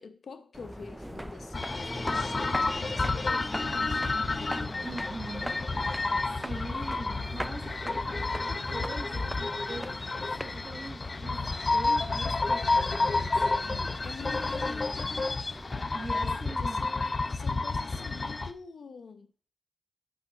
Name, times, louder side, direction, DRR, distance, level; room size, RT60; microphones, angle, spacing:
voice 1, 0.0-4.8 5.8-6.5 14.0-15.2 16.1-19.3, left 5 dB, 75° left, 0.9 m, -46 dB
sound 1, 0.5-15.8, equal, 5° right, 0.5 m, -42 dB
sound 2, 1.5-18.5, left 3 dB, 40° left, 0.7 m, -30 dB
voice 2, 4.8-5.5 6.4-13.9 15.9-16.8, right 2 dB, 35° right, 3.1 m, -43 dB
6.3 x 5.9 x 6.9 m
cardioid pair, 60°, 0 cm